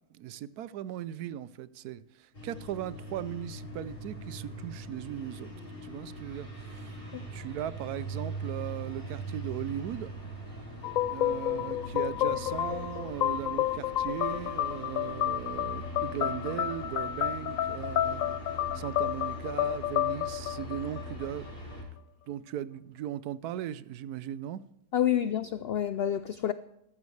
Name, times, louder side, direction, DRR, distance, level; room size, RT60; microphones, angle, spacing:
voice 1, 0.1-5.5 5.8-7.0 7.3-10.1 11.1-21.5 22.3-24.6, right 11 dB, 80° right, 1.1 m, -38 dB
sound 1, 2.3-21.8, right 1 dB, 35° left, 5.3 m, -41 dB
sound 2, 10.8-21.5, left 12 dB, 70° left, 0.9 m, -31 dB
voice 2, 24.9-26.5, left 10 dB, 85° left, 0.5 m, -28 dB
14.5 x 12.5 x 3.2 m
omnidirectional pair, 1.6 m